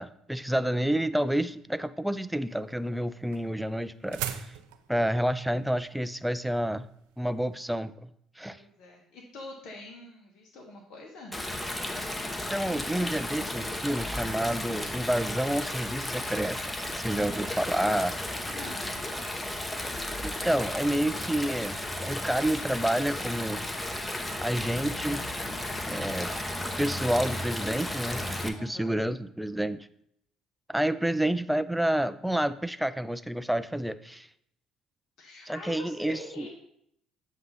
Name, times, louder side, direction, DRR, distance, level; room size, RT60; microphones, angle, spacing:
voice 1, 0.0-4.5 4.9-6.8 7.2-8.1 8.4-8.6 12.5-18.1 19.3-19.5 20.2-21.8 22.0-23.7 24.4-25.2 25.9-26.3 26.8-29.9 30.7-34.3 35.5-36.5, right 1 dB, 5° right, 13 dB, 0.4 m, -29 dB
sound 1, 2.4-7.6, right 11 dB, 85° right, 0.4 m, -41 dB
voice 2, 8.5-11.4 18.4-19.1 28.6-29.0 35.2-36.5, left 2 dB, 60° left, -1 dB, 1.2 m, -45 dB
Stream, 11.3-28.5, left 1 dB, 15° left, 0.9 m, -34 dB
7.7 x 2.7 x 5.4 m, 0.72 s
hypercardioid pair, 65°, 0 cm